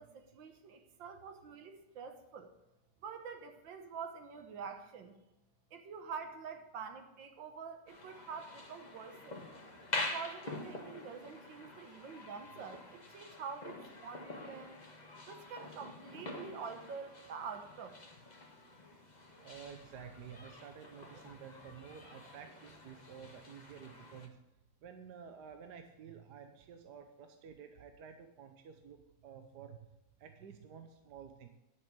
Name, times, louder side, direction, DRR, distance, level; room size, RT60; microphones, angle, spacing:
voice 1, 0.0-2.5 3.0-5.2 5.7-9.4 10.1-14.8 15.3-18.0, right 6 dB, 80° right, 7 dB, 1.9 m, -46 dB
sound 1, 7.9-24.3, left 2 dB, 25° left, 1.4 m, -46 dB
voice 2, 19.4-24.4 24.8-29.8 30.2-31.5, right 7 dB, 65° right, 6 dB, 1.4 m, -51 dB
10.5 x 6.7 x 6.8 m, 0.95 s
omnidirectional pair, 2.0 m